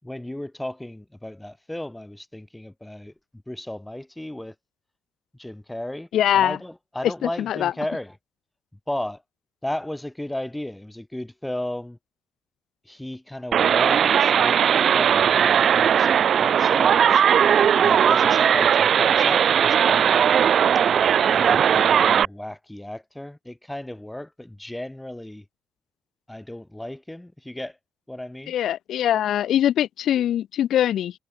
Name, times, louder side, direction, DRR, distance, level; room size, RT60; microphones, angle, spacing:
voice 1, 0.0-3.1 3.5-4.6 5.3-6.1 6.3-8.2 8.9-9.2 9.6-12.0 12.9-17.2 17.8-20.4 21.3-25.5 26.3-27.8 28.1-28.5, left 1 dB, 5° left, 7.3 m, -34 dB
voice 2, 6.1-6.6 7.2-7.7 28.5-31.1, left 11 dB, 75° left, 0.5 m, -22 dB
sound 1, 13.5-22.3, right 8 dB, 60° right, 1.7 m, -18 dB
cardioid pair, 90°, 0 cm